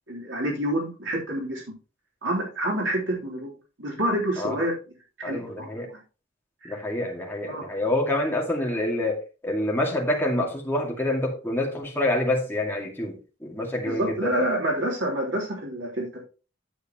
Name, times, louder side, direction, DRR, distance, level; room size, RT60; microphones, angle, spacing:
voice 1, 0.1-1.7 2.2-3.5 3.8-4.7 5.2-6.0 6.6-6.7 7.5-7.6 13.8-16.2, right 1 dB, 85° right, -2 dB, 3.5 m, -28 dB
voice 2, 5.2-5.9 6.6-14.3, left 1 dB, 10° left, -1 dB, 2.2 m, -27 dB
9.3 x 8.1 x 3.0 m, 0.33 s
head